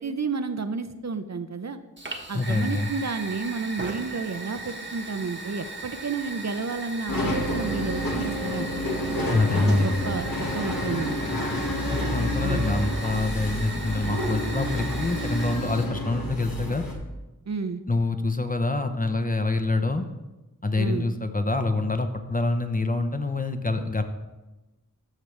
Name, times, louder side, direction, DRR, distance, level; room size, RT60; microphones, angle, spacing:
voice 1, 0.0-1.8 2.3-8.7 9.3-11.5 12.4-12.6 17.5-17.8 20.8-21.0, right 4 dB, 55° right, 9 dB, 0.5 m, -31 dB
Fire, 2.0-15.8, right 2 dB, 35° right, 1.1 m, -38 dB
voice 2, 2.3-2.9 9.3-10.0 11.9-16.8 17.9-20.1 20.6-24.0, left 2 dB, 25° left, 7 dB, 0.7 m, -26 dB
sound 1, 7.1-16.9, left 1 dB, 90° left, 1.4 m, -29 dB
14.0 x 4.9 x 3.2 m, 1.1 s
wide cardioid pair, 60°, 34 cm